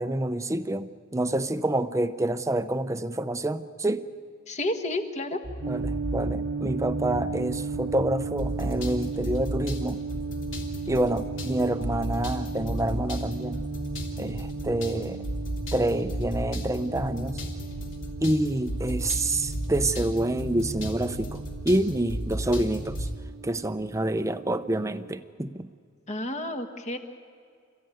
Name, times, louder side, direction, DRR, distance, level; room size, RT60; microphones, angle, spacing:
voice 1, 0.0-4.1 5.7-10.0 10.9-13.6 14.2-15.3 15.7-17.4 18.2-23.1 23.4-25.7, right 1 dB, 15° right, 11 dB, 0.7 m, -27 dB
voice 2, 4.5-5.4 26.1-27.0, left 1 dB, 35° left, 5 dB, 1.6 m, -30 dB
sound 1, 5.4-23.2, equal, 65° left, 3.4 m, -34 dB
sound 2, 5.6-25.2, right 5 dB, 85° right, 0.6 m, -37 dB
29.0 x 15.0 x 9.3 m, 2.2 s
head